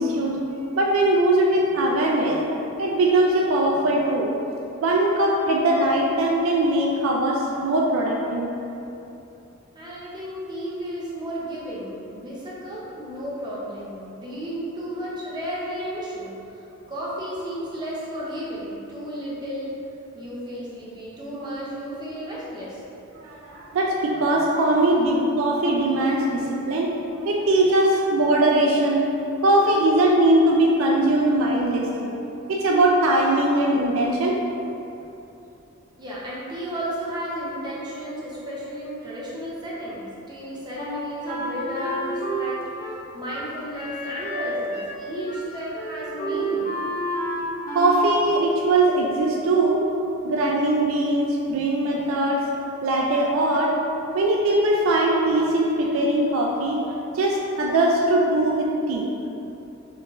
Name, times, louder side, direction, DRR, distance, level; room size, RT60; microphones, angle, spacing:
voice 1, 0.0-2.4 2.8-4.3 4.8-8.5 23.1-29.1 29.4-32.1 32.5-34.4 47.7-49.8 50.2-52.4 52.8-53.7 54.1-56.8 57.1-59.1, right 1 dB, 70° right, -1 dB, 0.3 m, -21 dB
voice 2, 9.7-16.6 16.9-19.8 20.1-22.8 36.0-46.8, equal, 20° right, -7 dB, 0.7 m, -33 dB
Wind instrument woodwind instrument, 40.8-45.0 45.3-45.5 45.7-48.1, right 1 dB, 45° left, 0.6 m, -30 dB
4.1 x 3.1 x 2.5 m, 2.9 s
head